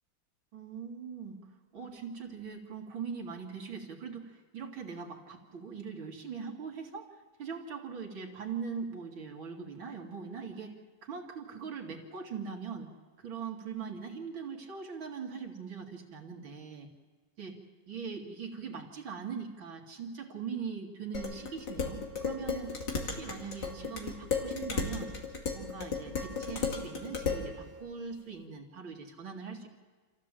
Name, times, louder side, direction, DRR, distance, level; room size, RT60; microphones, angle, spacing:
voice 1, 0.5-1.4 1.7-7.1 7.4-10.7 11.0-12.9 13.2-16.9 17.4-17.6 17.9-25.1 25.5-29.7, right 6 dB, 70° right, 1 dB, 2.9 m, -41 dB
Dishes pots and pans, 21.1-27.5, left 5 dB, 55° left, 2.9 m, -35 dB
27.0 x 15.0 x 7.5 m, 1.4 s
omnidirectional pair, 2.3 m